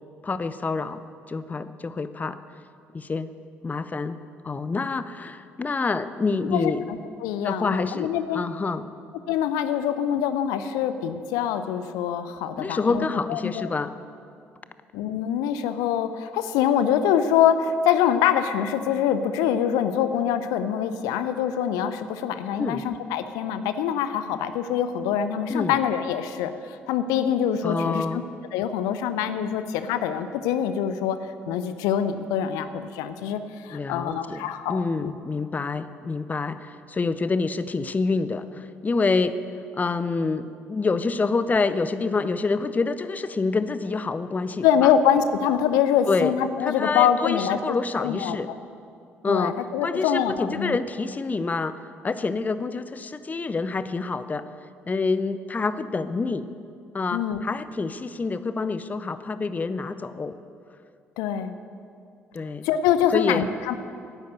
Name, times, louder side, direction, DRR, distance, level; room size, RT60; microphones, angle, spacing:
voice 1, 0.2-2.4 2.9-3.3 3.6-4.2 4.4-6.8 7.4-8.9 12.6-13.9 22.6-22.9 25.5-25.8 27.6-28.2 33.7-39.4 39.7-44.9 46.1-46.3 46.6-48.5 49.2-49.5 49.8-54.5 54.9-56.5 56.9-60.3 62.3-62.7 63.1-63.5, left 4 dB, 25° left, 13 dB, 0.6 m, -27 dB
voice 2, 7.2-8.4 9.3-13.7 14.9-28.2 28.5-31.2 31.5-35.1 44.6-47.8 48.0-48.6 49.3-50.8 57.1-57.4 61.2-61.6 62.6-63.7, left 9 dB, 65° left, 11 dB, 0.6 m, -24 dB
11.5 x 10.5 x 8.0 m, 2.4 s
figure-of-eight pair, 50°, 7 cm